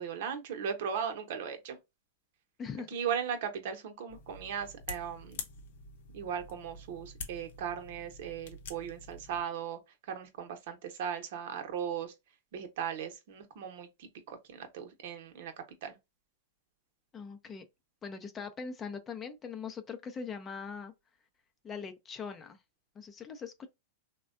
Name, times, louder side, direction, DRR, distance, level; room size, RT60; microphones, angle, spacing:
voice 1, 0.0-1.8 2.9-5.4 6.1-9.8 10.1-12.1 12.5-15.5 15.8-16.0, right 8 dB, 65° right, 0.8 m, -37 dB
sound 1, 4.1-9.4, left 4 dB, 70° left, 0.7 m, -46 dB
voice 2, 17.1-17.6 18.0-20.9 21.6-22.6 23.0-23.7, left 5 dB, 25° left, 0.5 m, -41 dB
3.3 x 2.1 x 2.5 m
hypercardioid pair, 120°, 0 cm